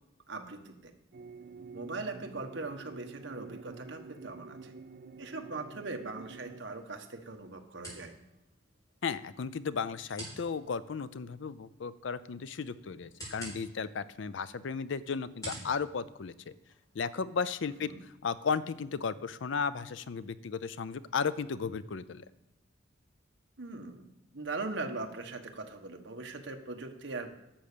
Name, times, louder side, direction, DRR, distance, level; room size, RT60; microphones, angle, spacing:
voice 1, 0.3-0.9 1.7-4.7 5.2-8.1 17.8-18.0 23.6-24.0 24.3-27.3, right 3 dB, 65° right, 4 dB, 1.3 m, -40 dB
sound 1, 1.1-6.6, right 4 dB, 45° right, 0.3 m, -48 dB
sound 2, 6.0-17.0, right 1 dB, 15° left, 5.6 m, -51 dB
voice 2, 9.0-16.5 16.9-22.2, left 5 dB, 65° left, 15 dB, 0.5 m, -35 dB
11.5 x 7.1 x 6.8 m, 0.89 s
head